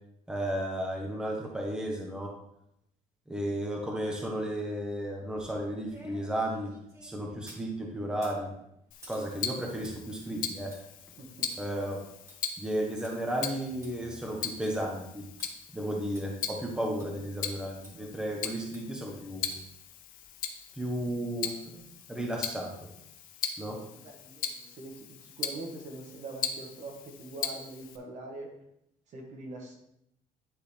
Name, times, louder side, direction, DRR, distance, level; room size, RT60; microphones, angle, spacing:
voice 1, 0.3-2.3 3.3-6.7 7.0-8.5 9.1-10.7 11.6-12.0 12.6-15.2 15.7-19.6 20.8-21.8 22.1-22.7 23.6-23.8, right 1 dB, 5° right, -1 dB, 1.2 m, -33 dB
sound 1, 5.2-7.7 8.1-13.1 13.5-13.6 13.8-13.9 14.4-14.8 15.4-15.5 16.2-16.3 17.0-17.1 17.8-17.9 18.7-19.1 19.5-19.8 20.2-20.3, equal, 20° right, 2.3 m, -54 dB
Tick-tock, 8.9-28.0, left 8 dB, 75° left, 0.8 m, -40 dB
voice 2, 11.2-11.5 23.9-28.5 29.1-29.8, right 2 dB, 55° right, 1 dB, 1.6 m, -43 dB
10.5 x 3.9 x 3.5 m, 0.78 s
cardioid pair, 130°, 14 cm